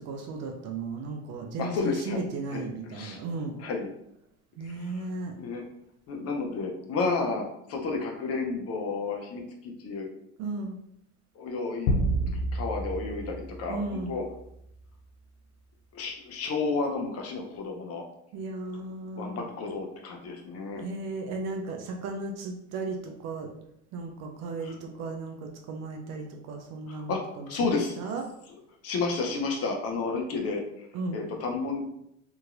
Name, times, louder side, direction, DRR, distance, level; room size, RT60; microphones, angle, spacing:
voice 1, 0.1-3.6 4.6-5.3 10.4-10.8 13.7-14.1 18.3-19.4 20.8-23.5 23.9-28.2 30.9-31.2, right 3 dB, 40° right, 3 dB, 0.5 m, -35 dB
voice 2, 1.6-2.2 2.5-3.2 3.6-3.9 4.6-5.1 5.4-5.6 6.1-10.1 11.4-12.0 12.5-14.2 15.9-18.0 19.2-20.8 24.6-24.8 26.9-27.2 27.5-28.0 28.8-31.9, left 4 dB, 35° left, 1 dB, 0.6 m, -31 dB
sound 1, 11.9-14.4, right 1 dB, 80° left, 0.5 m, -29 dB
2.9 x 2.7 x 2.4 m, 0.76 s
hypercardioid pair, 80°, 43 cm